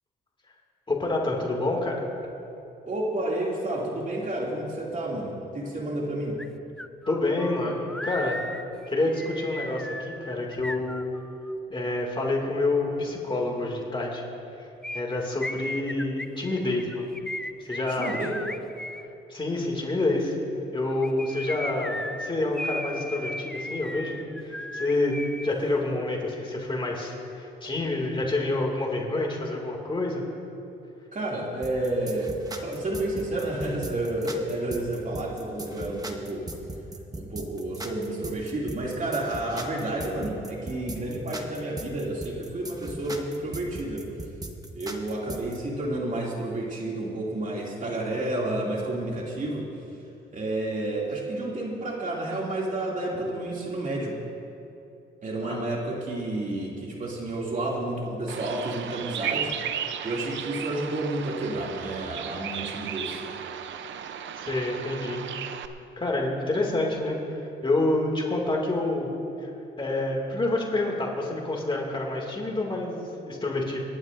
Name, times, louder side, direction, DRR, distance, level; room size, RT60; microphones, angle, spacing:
voice 1, 0.9-2.0 7.1-8.4 8.9-11.1 11.7-14.2 14.6-14.7 14.9-17.0 17.6-18.2 19.3-20.4 20.7-30.2 55.4-55.7 64.4-65.2 66.0-69.1 69.4-69.5 69.8-73.8, left 2 dB, 25° left, -1 dB, 2.4 m, -28 dB
voice 2, 2.9-6.4 18.0-18.4 31.1-32.3 32.6-36.5 37.1-44.1 44.7-49.7 50.3-54.2 55.2-59.5 60.0-63.2, right 1 dB, 40° right, -3 dB, 2.7 m, -30 dB
sound 1, 6.4-6.5 6.8-11.5 14.8-19.0 20.9-25.5 25.8-25.9, left 1 dB, 5° left, 0.4 m, -36 dB
sound 2, 31.6-45.6, right 2 dB, 20° right, 1.2 m, -39 dB
Bird vocalization bird call bird song, 58.3-65.7, right 9 dB, 70° right, 0.7 m, -35 dB
28.0 x 11.0 x 2.7 m, 2.8 s
cardioid pair, 90°, 20 cm